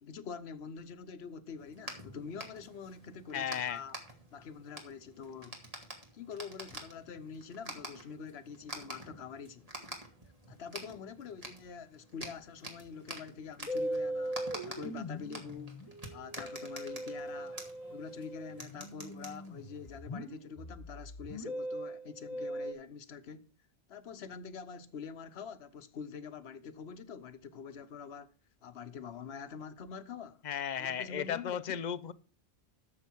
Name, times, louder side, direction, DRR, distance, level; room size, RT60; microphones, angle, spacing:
voice 1, 0.0-4.0 4.3-5.6 6.1-9.7 10.5-14.4 14.6-15.8 16.1-17.6 17.9-23.5 23.9-28.3 28.6-30.5 30.8-31.6, left 6 dB, 85° left, 1.1 m, -45 dB
sound 1, 1.6-20.0, right 1 dB, 35° right, 2.1 m, -48 dB
voice 2, 3.3-3.8 30.4-32.1, left 8 dB, 50° left, 0.6 m, -35 dB
Musical instrument, 13.7-22.7, equal, 35° left, 1.3 m, -40 dB
12.5 x 6.9 x 4.5 m
omnidirectional pair, 1.0 m